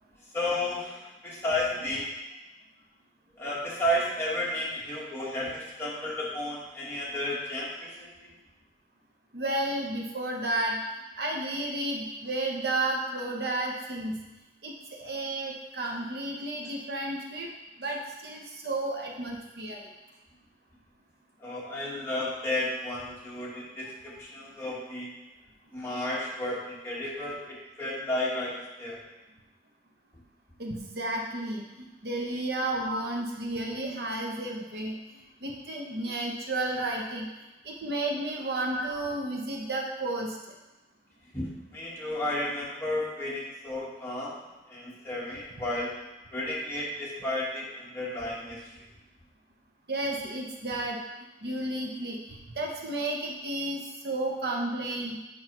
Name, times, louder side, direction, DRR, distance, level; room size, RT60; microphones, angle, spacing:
voice 1, 0.3-2.1 3.4-8.3 10.7-10.8 21.4-25.1 25.7-29.0 32.8-33.0 36.8-36.9 38.7-38.9 41.3-44.4 44.7-46.0 46.3-48.8, left 1 dB, 15° left, -7 dB, 1.4 m, -32 dB
voice 2, 9.3-10.8 11.2-14.2 14.6-17.5 17.8-19.8 30.6-35.0 35.4-37.3 37.6-40.4 49.9-51.0 51.4-55.2, right 2 dB, 55° right, 0 dB, 0.8 m, -32 dB
7.7 x 5.4 x 3.0 m, 1.1 s
head